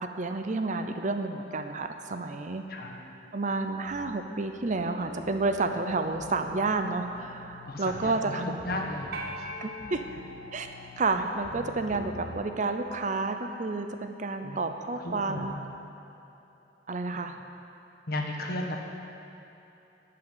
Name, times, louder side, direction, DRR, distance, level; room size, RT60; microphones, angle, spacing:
voice 1, 0.0-2.6 3.3-8.6 9.6-10.0 10.5-10.7 11.0-15.5 16.9-17.4, right 3 dB, 45° right, 7 dB, 0.6 m, -30 dB
sound 1, 2.8-15.8, equal, 15° left, 1.6 m, -55 dB
sound 2, 4.6-12.4, left 2 dB, 85° left, 1.0 m, -45 dB
voice 2, 7.6-9.1 9.4-9.5 14.4-14.6 15.0-15.6 18.1-18.8, left 1 dB, 55° left, 0 dB, 1.4 m, -34 dB
sound 3, 9.1-11.6, equal, 60° right, 1.0 m, -42 dB
12.0 x 5.7 x 9.3 m, 2.9 s
head